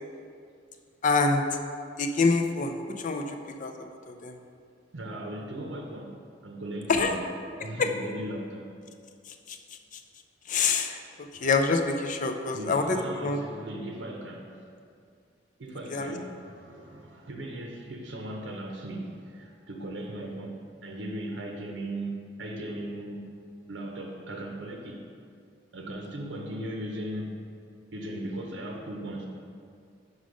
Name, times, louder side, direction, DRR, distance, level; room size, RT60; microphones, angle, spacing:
voice 1, 1.0-1.4 2.0-3.7 4.1-4.4 6.9-7.2 7.8-7.9 9.5-9.6 10.5-11.0 11.4-13.4 15.9-16.1, left 4 dB, 45° left, 5 dB, 0.4 m, -26 dB
voice 2, 4.9-6.1 6.4-7.3 7.6-8.7 12.5-14.5 15.6-23.3 23.7-25.0 25.7-27.4 27.9-29.3, right 1 dB, 85° right, 1 dB, 0.7 m, -37 dB
5.1 x 4.9 x 5.2 m, 2.3 s
head